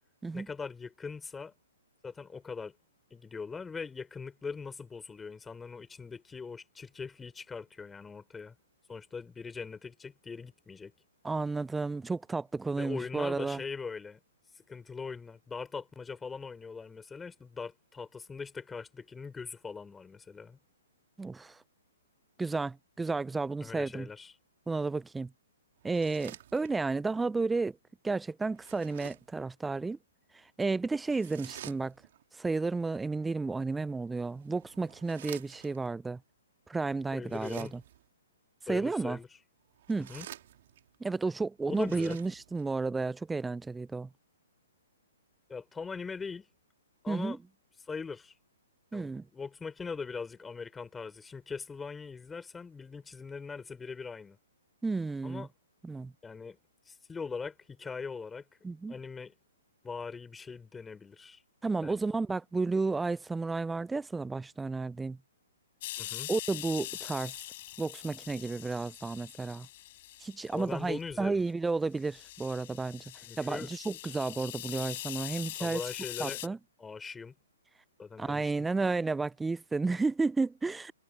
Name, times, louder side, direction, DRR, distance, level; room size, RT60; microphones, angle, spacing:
voice 1, 0.3-1.5 2.0-2.7 3.1-8.5 8.9-10.9 12.8-14.2 14.5-20.6 23.6-24.3 37.1-37.7 38.7-39.3 40.1-40.3 41.7-42.2 45.5-46.5 47.0-47.4 47.8-48.3 48.9-54.4 55.2-55.5 56.2-56.6 56.9-59.3 59.8-61.4 61.8-62.0 66.0-66.3 70.5-71.4 73.2-73.7 75.6-76.4 76.8-77.3 78.0-78.7, left 5 dB, 10° left, 4.8 m, -41 dB
voice 2, 11.2-13.6 21.2-21.6 22.4-24.1 24.7-25.3 25.8-27.8 28.0-30.0 30.6-31.9 32.4-36.2 36.7-37.7 38.7-39.2 39.9-40.1 41.0-44.1 47.1-47.4 48.9-49.3 54.8-55.5 55.8-56.1 58.6-59.0 61.6-65.2 66.3-67.3 67.8-69.7 70.2-73.0 73.4-75.8 76.2-76.6 78.2-80.9, right 3 dB, 5° right, 0.5 m, -32 dB
sound 1, 25.8-27.0 28.5-29.4 31.1-32.2 34.0-35.9 37.2-38.1 39.7-40.9 41.6-42.7, right 12 dB, 50° right, 3.0 m, -50 dB
sound 2, 65.8-71.0 71.5-71.6 72.0-76.5, left 16 dB, 45° left, 6.5 m, -43 dB
figure-of-eight pair, 125°, 0 cm